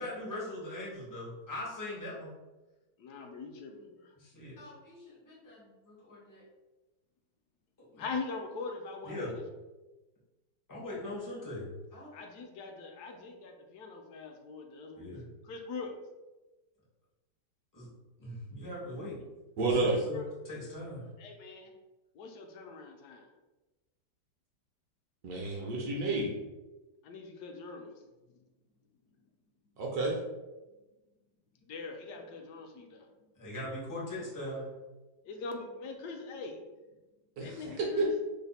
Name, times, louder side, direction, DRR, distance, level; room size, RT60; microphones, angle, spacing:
voice 1, 0.0-2.3 4.2-6.4 7.9-8.0 9.0-9.3 10.7-12.2 15.0-15.2 17.7-17.9 18.2-19.2 19.8-20.2 20.5-21.0 33.4-34.7, left 1 dB, 30° left, -6 dB, 0.3 m, -41 dB
voice 2, 3.0-4.1 8.0-9.4 12.1-15.1 15.4-15.9 19.9-20.3 21.2-21.7 22.1-23.3 27.0-27.9 28.3-28.4 31.6-33.1 35.2-36.6 37.4-38.1, left 4 dB, 70° left, 3 dB, 1.0 m, -42 dB
voice 3, 19.6-20.0 25.2-26.3 29.8-30.2 37.4-38.1, right 3 dB, 65° right, -2 dB, 1.0 m, -30 dB
3.3 x 2.1 x 4.0 m, 1.1 s
omnidirectional pair, 2.0 m